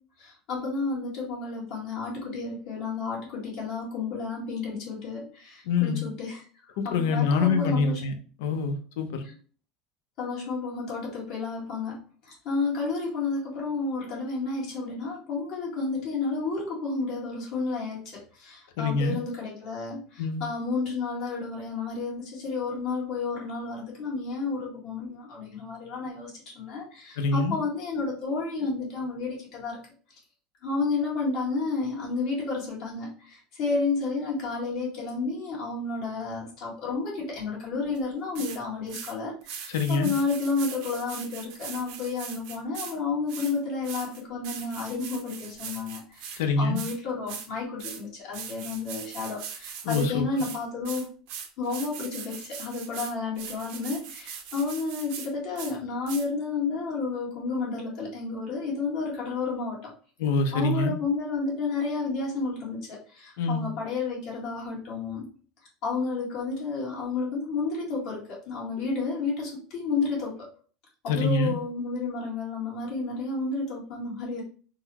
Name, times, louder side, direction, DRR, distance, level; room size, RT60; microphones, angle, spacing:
voice 1, 0.5-5.2 5.8-6.4 6.8-8.0 10.2-11.9 12.4-18.0 18.8-20.0 20.4-26.3 26.6-26.8 27.3-29.8 30.6-33.1 33.6-39.3 39.9-46.0 46.6-49.4 49.9-51.0 51.6-52.3 52.6-54.0 54.5-59.8 60.5-62.8 63.5-65.2 65.8-68.2 68.5-69.5 69.8-70.3 71.0-74.4, left 4 dB, 50° left, -4 dB, 1.6 m, -31 dB
voice 2, 5.7-6.0 6.8-8.1 8.4-9.2 18.8-19.2 20.2-20.4 27.2-27.6 39.7-40.1 46.4-46.8 49.8-50.3 60.2-60.9 63.4-63.7 71.1-71.5, left 4 dB, 80° left, 7 dB, 0.5 m, -25 dB
sound 1, 38.0-38.1 38.4-38.6 38.9-39.1 39.4-42.9 43.3-46.4 46.8-47.0 47.3-47.5 47.8-48.0 48.3-50.1 50.4-55.3 55.6-55.7 56.1-56.3, right 7 dB, 65° right, 0.6 m, -40 dB
3.8 x 2.0 x 2.9 m, 0.41 s
supercardioid pair, 150°, 0 cm